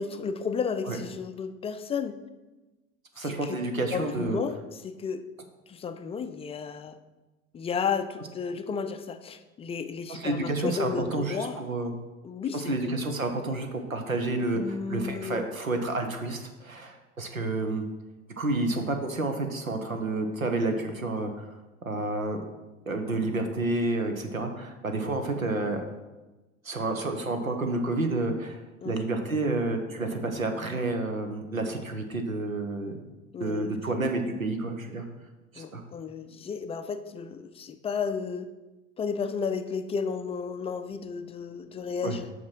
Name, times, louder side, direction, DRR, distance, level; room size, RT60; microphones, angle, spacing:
voice 1, 0.0-2.2 3.2-3.6 3.9-5.2 5.7-7.0 7.5-11.6 12.2-12.7 14.5-15.4 28.8-29.0 33.3-33.8 35.6-38.5 39.0-42.3, left 6 dB, 15° left, 9 dB, 0.4 m, -33 dB
voice 2, 3.2-4.4 10.1-11.9 12.5-17.8 18.4-21.6 21.8-22.4 22.9-25.8 26.6-32.9 33.4-35.0 35.5-35.8 42.0-42.2, right 2 dB, 85° right, 5 dB, 1.1 m, -30 dB
8.4 x 6.0 x 4.6 m, 1.1 s
figure-of-eight pair, 75°, 40 cm